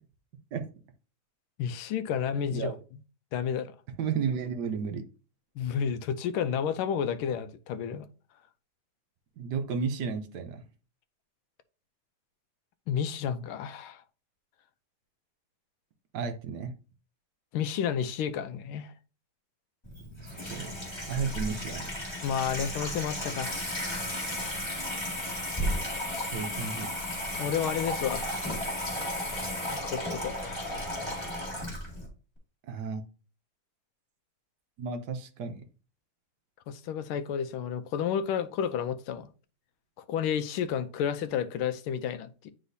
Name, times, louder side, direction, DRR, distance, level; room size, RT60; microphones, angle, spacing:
voice 1, 1.6-2.8 3.3-3.7 5.6-8.1 12.9-14.0 17.5-18.9 22.2-23.7 27.3-28.5 29.7-30.7 36.7-39.3 40.0-42.5, left 8 dB, 85° left, 1.5 m, -31 dB
voice 2, 4.0-5.0 9.4-10.6 16.1-16.7 20.2-20.7 21.1-21.9 25.5-25.9 26.2-26.9 32.6-33.0 34.8-35.6, right 6 dB, 60° right, 1.3 m, -33 dB
Water tap faucet / Sink (filling or washing), 19.8-32.1, left 1 dB, 15° left, 2.0 m, -34 dB
9.8 x 4.1 x 2.7 m
omnidirectional pair, 2.3 m